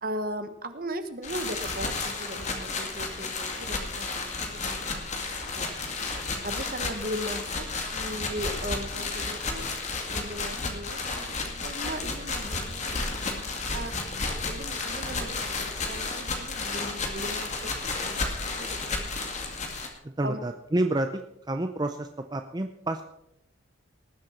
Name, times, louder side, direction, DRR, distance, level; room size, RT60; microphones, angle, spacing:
voice 1, 0.0-5.1 5.6-5.7 6.4-9.6 10.1-13.9 14.4-17.7 18.0-19.1 19.3-19.4 20.2-20.4, equal, 45° right, 9 dB, 1.2 m, -38 dB
sound 1, 1.2-19.9, left 3 dB, 35° left, 2.1 m, -32 dB
voice 2, 20.0-21.2 21.5-23.0, right 1 dB, 20° right, 6 dB, 0.5 m, -29 dB
19.0 x 8.0 x 5.8 m, 0.83 s
head